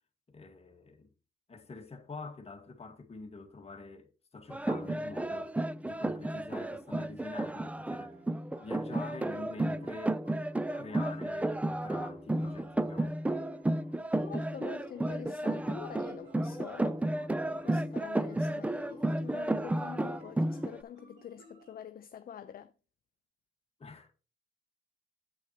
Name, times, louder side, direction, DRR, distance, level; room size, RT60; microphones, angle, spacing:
voice 1, 0.3-1.1 1.5-4.1 4.3-5.5 5.8-8.2 8.6-10.2 10.7-13.2 23.8-24.1, left 3 dB, 30° left, 1.7 m, -46 dB
sound 1, 4.5-20.8, right 1 dB, 5° right, 0.4 m, -32 dB
sound 2, 8.1-21.8, right 1 dB, 75° right, 5.3 m, -58 dB
voice 2, 14.2-17.0 17.5-22.7, left 9 dB, 50° left, 0.6 m, -46 dB
8.5 x 7.6 x 2.9 m
cardioid pair, 90°, 20 cm